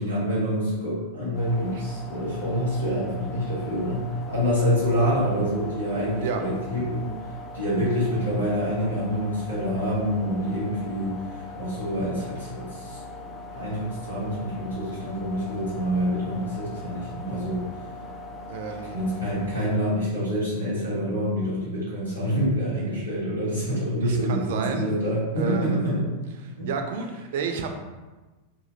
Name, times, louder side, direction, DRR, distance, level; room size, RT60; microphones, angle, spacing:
voice 1, 0.0-7.1 7.5-13.0 13.5-17.6 18.9-26.0 26.6-26.7, equal, 85° left, -9 dB, 1.4 m, -26 dB
sound 1, 1.3-19.8, left 2 dB, 20° left, 0.4 m, -40 dB
voice 2, 18.5-19.0 24.0-24.9 25.4-25.8 26.7-27.7, right 5 dB, 55° right, 5 dB, 0.4 m, -30 dB
2.9 x 2.4 x 2.9 m, 1.2 s
figure-of-eight pair, 90°, 0 cm